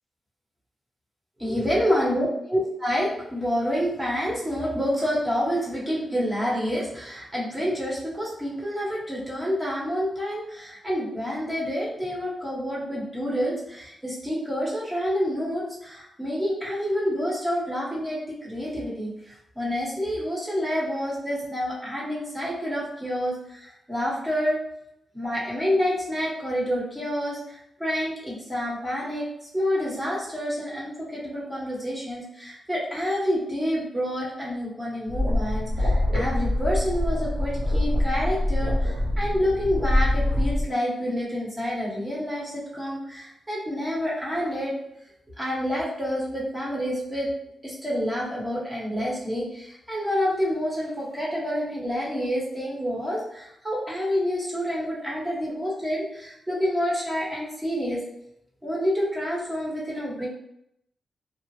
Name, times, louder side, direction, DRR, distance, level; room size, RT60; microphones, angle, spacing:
voice 1, 1.4-24.6 25.1-29.2 29.5-44.7 45.4-47.3 47.6-58.0 58.6-60.3, equal, 20° right, -6 dB, 1.2 m, -28 dB
sound 1, 35.1-40.6, left 1 dB, 65° right, 1.1 m, -24 dB
2.9 x 2.3 x 3.0 m, 0.78 s
cardioid pair, 90°, 0 cm